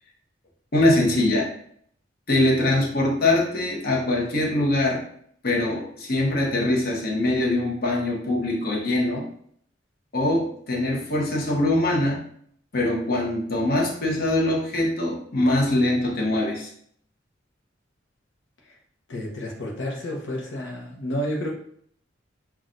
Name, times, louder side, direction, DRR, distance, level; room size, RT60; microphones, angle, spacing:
voice 1, 0.7-1.5 2.3-5.0 5.4-9.3 10.1-12.2 12.7-16.7, left 1 dB, 55° left, -2 dB, 1.0 m, -23 dB
voice 2, 19.1-21.5, equal, 85° left, -2 dB, 0.8 m, -30 dB
5.9 x 2.4 x 2.5 m, 0.63 s
head